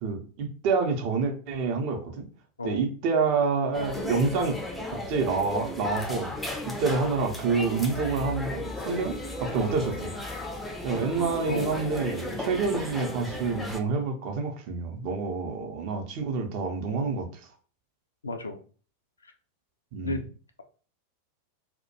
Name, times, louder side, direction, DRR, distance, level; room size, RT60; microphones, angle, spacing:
voice 1, 0.0-2.3 2.6-4.6 4.9-6.3 6.8-10.1 10.8-17.3 19.9-20.2, right 4 dB, 45° right, 4 dB, 0.5 m, -28 dB
sound 1, 3.7-13.8, left 1 dB, 5° left, 0.4 m, -35 dB
voice 2, 11.5-11.8 18.2-18.6 19.2-19.3 20.0-20.2, left 2 dB, 75° left, 6 dB, 0.3 m, -32 dB
2.2 x 2.1 x 2.8 m, 0.39 s
figure-of-eight pair, 90°, 0 cm